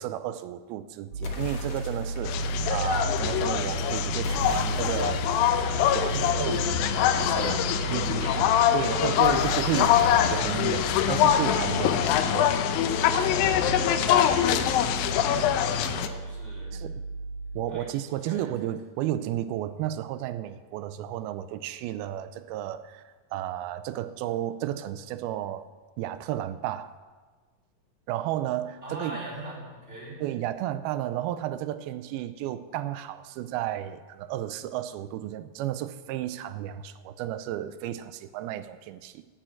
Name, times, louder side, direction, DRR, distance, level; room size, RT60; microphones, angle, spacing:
voice 1, 0.0-5.3 5.6-6.6 7.0-7.6 7.9-12.6 16.7-16.9 17.5-25.7 26.0-26.9 28.1-29.2 30.2-39.3, right 12 dB, 90° right, 12 dB, 2.5 m, -33 dB
sound 1, 1.1-17.7, right 3 dB, 55° right, 2.7 m, -34 dB
sound 2, 1.2-2.5 4.2-6.9 9.2-11.9, left 4 dB, 55° left, 1.4 m, -40 dB
sound 3, 2.3-16.1, left 10 dB, 80° left, 2.3 m, -24 dB
voice 2, 6.1-8.4 8.7-9.2 9.9-10.1 13.6-16.8 17.6-18.5 28.8-30.2, right 1 dB, 15° right, -3 dB, 2.5 m, -40 dB
9.6 x 8.9 x 7.5 m, 1.4 s
omnidirectional pair, 4.3 m